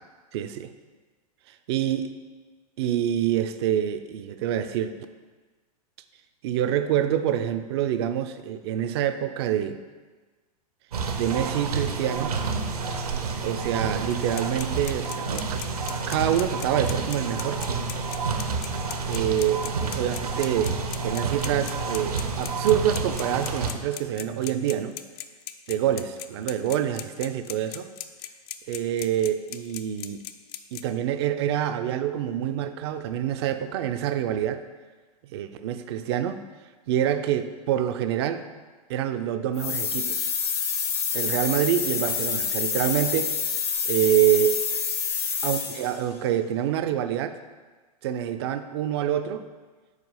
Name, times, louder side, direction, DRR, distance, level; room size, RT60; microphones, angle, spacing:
voice 1, 0.3-0.7 1.7-2.2 2.8-4.9 6.4-9.8 11.2-12.4 13.4-15.6 16.1-17.6 19.1-25.0 25.7-27.9 28.7-30.2 30.7-34.6 35.3-36.4 36.9-38.4 38.9-40.3 41.1-43.3 43.9-44.6 45.4-47.4 48.0-49.5, right 10 dB, 40° right, 10 dB, 0.4 m, -26 dB
sound 1, 10.9-23.7, right 4 dB, 70° right, 0.7 m, -29 dB
sound 2, 14.1-30.8, left 13 dB, 40° left, 0.4 m, -37 dB
sound 3, 39.6-46.0, left 6 dB, 70° left, 0.9 m, -27 dB
4.8 x 4.6 x 5.6 m, 1.3 s
figure-of-eight pair, 100°, 20 cm